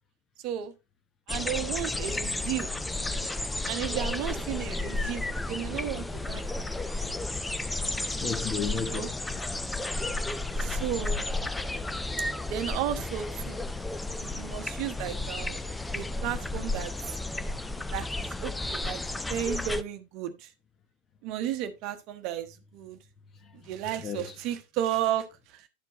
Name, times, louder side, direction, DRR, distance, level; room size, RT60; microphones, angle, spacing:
sound 1, 1.3-19.8, left 2 dB, 5° left, 0.5 m, -32 dB
voice 1, 1.3-2.7 3.7-7.0 8.8-9.1 10.6-11.2 12.5-13.6 14.1-17.1 17.9-20.5 21.2-23.0 23.6-25.7, right 11 dB, 45° right, 1.0 m, -34 dB
voice 2, 8.1-9.2 10.4-10.8 23.3-23.7 24.0-24.4, left 6 dB, 25° left, 1.1 m, -35 dB
12.0 x 4.6 x 2.8 m
figure-of-eight pair, 90°, 0 cm